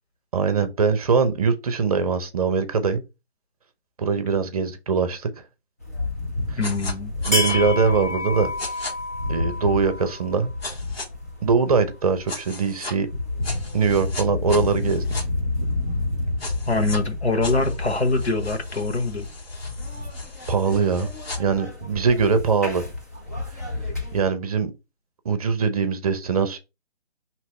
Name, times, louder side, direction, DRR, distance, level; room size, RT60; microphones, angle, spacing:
voice 1, 0.3-3.0 4.0-5.3 6.5-6.6 7.3-8.5 9.3-10.5 11.4-13.1 13.7-15.0 20.5-21.1 21.4-22.8 24.1-24.7 25.2-26.6, right 5 dB, 35° right, 0.8 m, -22 dB
sound 1, 5.8-24.2, left 2 dB, 15° left, 0.4 m, -29 dB
voice 2, 6.6-7.1 16.7-19.2, left 3 dB, 90° left, 1.3 m, -24 dB
sound 2, 6.6-6.9 7.2-7.6 8.6-8.9 10.6-11.1 12.3-12.9 13.4-15.2 16.4-17.0 17.4-21.4, left 3 dB, 65° left, 1.7 m, -37 dB
5.6 x 3.0 x 3.1 m
figure-of-eight pair, 150°, 32 cm